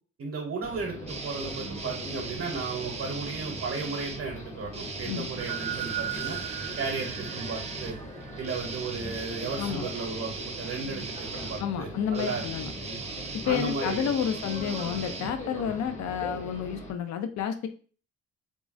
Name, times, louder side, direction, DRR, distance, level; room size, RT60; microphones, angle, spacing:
voice 1, 0.2-6.4 6.8-8.0 8.4-12.5 12.8-13.0 13.4-14.1 15.6-15.8, right 4 dB, 50° right, 0 dB, 0.8 m, -35 dB
sound 1, 0.6-16.9, left 1 dB, 25° left, 0.7 m, -42 dB
sound 2, 1.1-4.2 4.7-15.9, right 4 dB, 20° right, 0.5 m, -39 dB
sound 3, 5.4-9.3, right 12 dB, 75° right, 0.5 m, -38 dB
voice 2, 11.6-12.7 13.5-17.7, left 8 dB, 65° left, 9 dB, 0.5 m, -30 dB
3.6 x 2.0 x 2.4 m, 0.40 s
cardioid pair, 90°, 30 cm